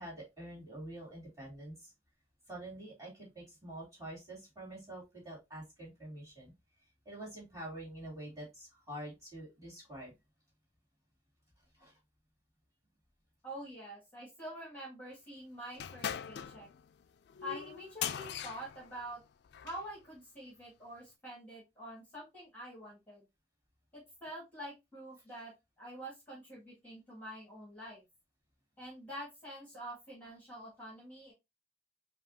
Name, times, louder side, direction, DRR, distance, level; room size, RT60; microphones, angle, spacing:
voice 1, 0.0-1.9 2.5-6.5 7.0-10.1 11.7-11.9, right 1 dB, 20° right, -4 dB, 2.6 m, -46 dB
voice 2, 13.4-16.7 17.4-19.2 19.6-23.2 23.9-28.0 28.8-31.3, equal, 10° left, -6 dB, 1.9 m, -46 dB
sound 1, 15.7-19.9, left 9 dB, 65° left, 0.3 m, -41 dB
5.1 x 2.4 x 2.6 m, 0.21 s
head